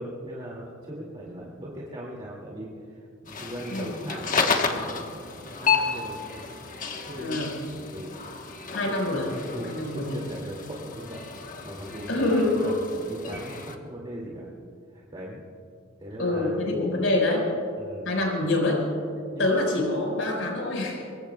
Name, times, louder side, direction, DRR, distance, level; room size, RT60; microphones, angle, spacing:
voice 1, 0.0-4.3 4.6-6.7 7.1-7.5 7.9-8.5 8.9-9.1 9.5-14.5 14.9-15.4 16.0-16.7 17.8-18.1 19.3-19.5, right 1 dB, 25° right, -4 dB, 2.2 m, -39 dB
sound 1, 3.3-13.8, left 5 dB, 45° left, 1.2 m, -32 dB
voice 2, 7.2-7.5 8.7-9.3 9.6-10.2 12.1-12.6 16.2-17.5 18.0-18.8 19.4-21.0, left 2 dB, 80° left, -1 dB, 4.8 m, -25 dB
24.0 x 23.0 x 2.3 m, 2.5 s
head